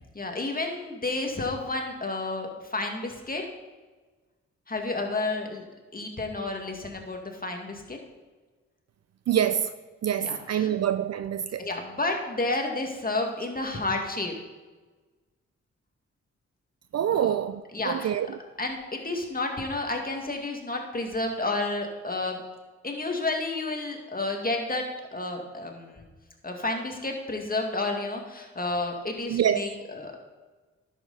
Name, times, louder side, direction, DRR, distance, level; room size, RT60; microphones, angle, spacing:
voice 1, 0.1-3.4 4.7-5.7 5.9-8.0 10.2-10.7 11.6-14.3 17.2-17.3 17.7-18.1 18.6-22.4 22.8-26.1 26.4-30.2, left 2 dB, 30° left, 2.1 m, -31 dB
voice 2, 9.3-9.7 10.0-11.7 16.9-18.4 29.3-29.7, right 9 dB, 55° right, 0.5 m, -26 dB
10.5 x 7.8 x 4.1 m
supercardioid pair, 50°, 31 cm